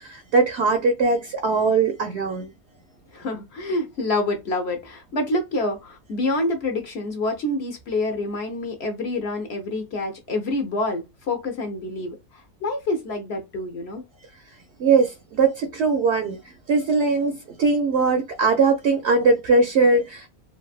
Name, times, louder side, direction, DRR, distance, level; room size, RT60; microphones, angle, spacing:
voice 1, 0.0-2.5 14.8-16.4 16.7-20.3, right 4 dB, 60° right, 0.8 m, -20 dB
voice 2, 3.1-14.0, left 2 dB, 55° left, 0.9 m, -27 dB
3.3 x 2.4 x 2.3 m
omnidirectional pair, 1.6 m